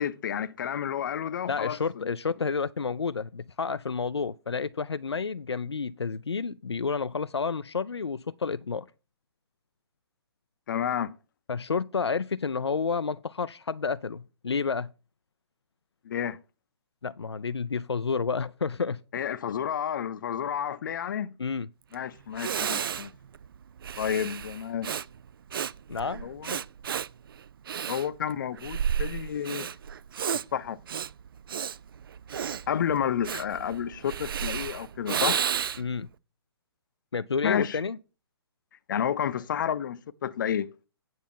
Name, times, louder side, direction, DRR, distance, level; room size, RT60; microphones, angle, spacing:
voice 1, 0.0-2.1 10.7-11.1 16.0-16.4 19.1-21.3 21.9-23.1 24.0-24.9 26.2-26.6 27.9-29.7 30.3-30.8 32.7-35.4 37.4-37.8 38.9-40.7, left 9 dB, 50° left, 0.7 m, -30 dB
voice 2, 1.5-8.9 11.5-14.9 17.0-19.0 21.4-21.7 25.9-26.3 35.8-36.1 37.1-38.0, left 5 dB, 85° left, 0.4 m, -30 dB
Breathing, 21.9-22.0 22.3-36.0, right 8 dB, 60° right, 0.4 m, -32 dB
9.3 x 6.9 x 4.4 m
figure-of-eight pair, 130°, 14 cm